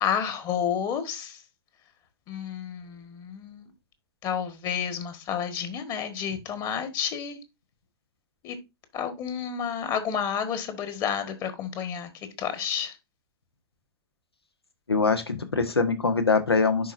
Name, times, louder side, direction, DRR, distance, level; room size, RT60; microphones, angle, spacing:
voice 1, 0.0-1.4 2.3-3.7 4.2-7.4 8.4-8.6 8.9-12.1 12.4-12.9, left 8 dB, 30° left, 1.6 m, -30 dB
voice 2, 14.9-16.9, left 4 dB, 85° left, 1.4 m, -23 dB
11.0 x 4.5 x 2.6 m
figure-of-eight pair, 100°, 13 cm